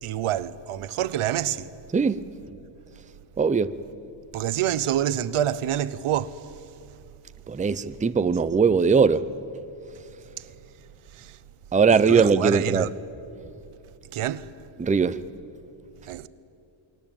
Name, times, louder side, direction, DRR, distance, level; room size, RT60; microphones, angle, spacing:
voice 1, 0.0-1.7 4.3-6.6 10.4-10.5 11.1-11.4 11.9-12.9 14.1-14.5 16.0-16.3, right 11 dB, 85° right, 1.1 m, -27 dB
voice 2, 3.4-3.7 7.5-9.2 11.7-12.9 14.8-15.2, right 5 dB, 15° right, 0.6 m, -20 dB
28.0 x 23.0 x 9.0 m
wide cardioid pair, 165°, 49 cm